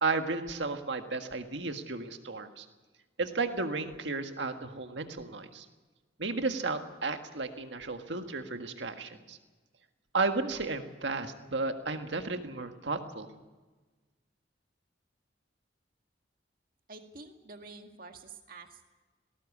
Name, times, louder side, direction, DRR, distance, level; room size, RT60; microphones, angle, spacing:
voice 1, 0.0-2.7 3.2-5.6 6.2-9.4 10.1-13.3, right 3 dB, 75° right, 6 dB, 1.7 m, -33 dB
voice 2, 16.9-18.9, right 3 dB, 50° right, 5 dB, 2.0 m, -48 dB
19.0 x 18.0 x 8.5 m, 1.3 s
head